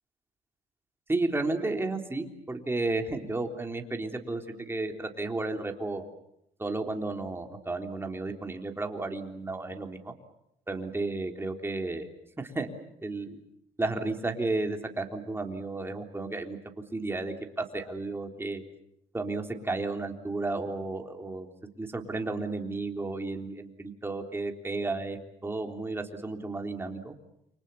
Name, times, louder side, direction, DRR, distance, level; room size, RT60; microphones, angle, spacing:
voice 1, 1.1-6.1 6.6-10.1 10.7-12.1 12.4-12.7 13.0-13.4 13.8-16.6 16.9-18.6 19.1-21.5 21.8-27.1, right 2 dB, 15° right, 3 dB, 3.6 m, -33 dB
30.0 x 25.0 x 7.1 m, 0.78 s
cardioid pair, 110°, 17 cm